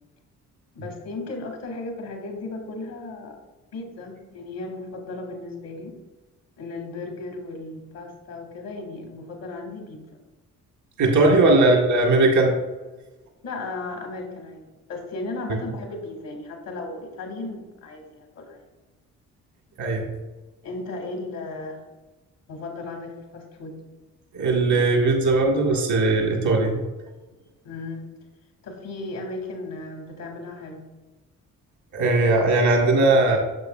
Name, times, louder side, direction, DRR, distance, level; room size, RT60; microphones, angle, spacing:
voice 1, 0.7-3.4 3.7-6.0 6.6-10.0 11.2-11.4 13.4-18.7 20.6-21.8 22.5-23.8 27.6-28.0 28.6-30.9, left 3 dB, 75° left, 2 dB, 1.9 m, -35 dB
voice 2, 11.0-12.5 15.5-15.6 19.8-20.0 24.3-26.8 31.9-33.4, right 2 dB, 75° right, 2 dB, 1.3 m, -19 dB
8.1 x 6.9 x 2.3 m, 1.1 s
hypercardioid pair, 50°, 35 cm